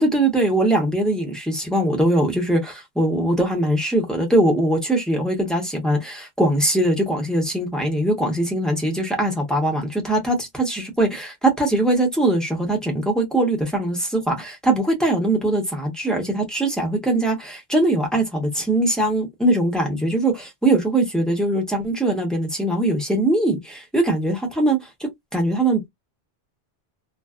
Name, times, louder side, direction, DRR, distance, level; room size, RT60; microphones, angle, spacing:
voice 1, 0.0-25.8, right 1 dB, ahead, 0.7 m, -21 dB
2.5 x 2.3 x 2.2 m
omnidirectional pair, 1.1 m